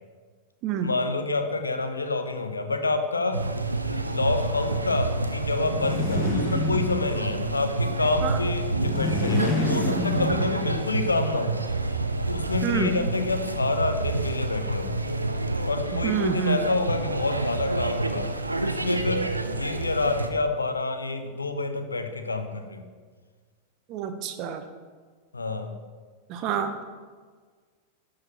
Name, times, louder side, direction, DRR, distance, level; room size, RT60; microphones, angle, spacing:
voice 1, 0.8-3.4 3.9-11.5 12.2-14.9 15.6-22.8 25.3-25.8 26.4-26.5, left 3 dB, 80° left, 7 dB, 0.9 m, -28 dB
sound 1, 3.3-20.3, right 2 dB, 80° right, 0.6 m, -28 dB
sound 2, 5.6-7.3 8.7-10.9, left 2 dB, 15° left, 1.9 m, -28 dB
voice 2, 12.6-12.9 16.0-16.6 23.9-24.6 26.3-26.7, right 8 dB, 40° right, 7 dB, 0.9 m, -27 dB
12.0 x 5.0 x 5.9 m, 1.6 s
figure-of-eight pair, 90°, 0 cm